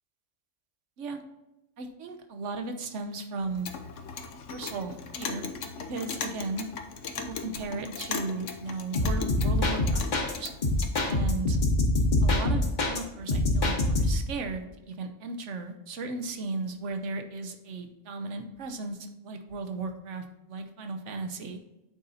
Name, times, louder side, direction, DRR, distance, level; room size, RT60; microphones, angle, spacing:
voice 1, 1.8-3.7 4.5-5.5 5.8-6.7 7.2-10.5 11.0-11.6 12.2-21.6, right 3 dB, 75° right, 6 dB, 1.2 m, -36 dB
Clock, 3.4-11.1, left 5 dB, 80° left, 1.1 m, -38 dB
sound 1, 9.0-10.3 10.6-13.0 13.3-14.3, left 2 dB, 40° left, 1.1 m, -25 dB
8.7 x 4.2 x 4.0 m, 0.96 s
omnidirectional pair, 1.3 m